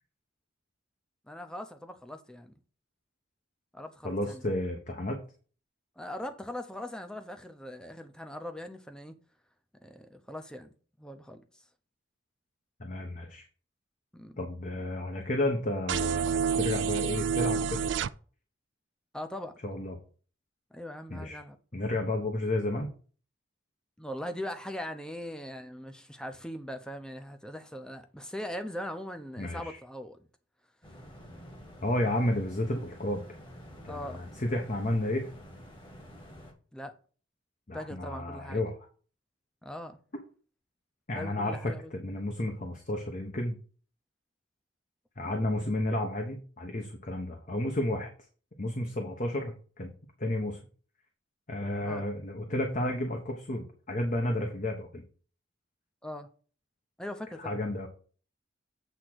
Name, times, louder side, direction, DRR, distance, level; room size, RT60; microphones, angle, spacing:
voice 1, 1.3-2.5 3.7-4.5 6.0-9.2 9.8-11.4 14.1-14.4 19.1-19.5 20.7-21.6 24.0-30.2 33.9-34.2 36.7-36.9 37.7-38.6 39.6-40.0 41.2-42.2 45.6-45.8 51.8-52.1 56.0-56.3 57.0-57.6, left 1 dB, 5° left, 0.8 m, -40 dB
voice 2, 4.0-5.2 12.8-13.5 14.4-17.8 19.6-20.0 21.1-21.4 21.7-22.9 29.4-29.8 31.8-33.2 33.8-35.3 37.7-38.8 41.1-43.5 45.2-48.1 48.6-49.9 50.2-50.6 51.5-55.0 57.4-57.9, left 1 dB, 40° left, 1.1 m, -32 dB
sound 1, 15.9-18.1, right 7 dB, 65° right, 0.4 m, -28 dB
sound 2, 30.8-36.5, equal, 25° left, 1.8 m, -49 dB
8.2 x 3.7 x 6.2 m
head